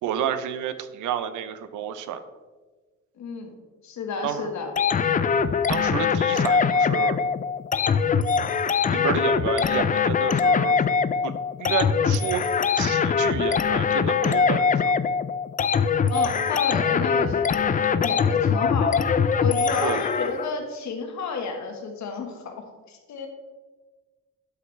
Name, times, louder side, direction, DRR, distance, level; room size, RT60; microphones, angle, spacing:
voice 1, 0.0-2.2 4.2-4.5 5.7-7.2 8.9-10.7 11.2-11.3 11.6-12.4 12.8-15.0 19.8-20.0, right 9 dB, 85° right, 11 dB, 0.7 m, -30 dB
voice 2, 3.2-3.5 3.8-4.7 16.1-19.1 19.4-23.3, left 4 dB, 65° left, 4 dB, 1.5 m, -31 dB
sound 1, 4.8-20.5, left 6 dB, 30° left, 0.4 m, -22 dB
12.0 x 5.9 x 3.3 m, 1.3 s
cardioid pair, 90°, 30 cm